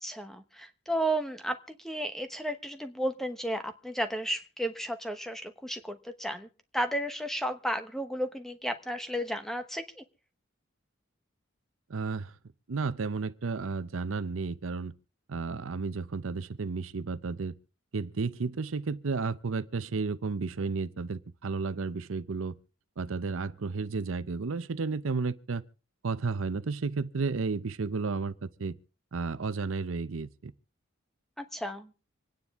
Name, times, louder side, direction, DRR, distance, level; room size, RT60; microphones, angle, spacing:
voice 1, 0.0-6.5 6.7-10.0 31.4-31.9, right 1 dB, ahead, 0.9 m, -33 dB
voice 2, 11.9-12.3 12.7-14.9 15.3-17.5 17.9-22.6 23.0-25.6 26.0-28.8 29.1-30.5, right 4 dB, 80° right, 0.6 m, -32 dB
26.0 x 9.6 x 3.6 m
head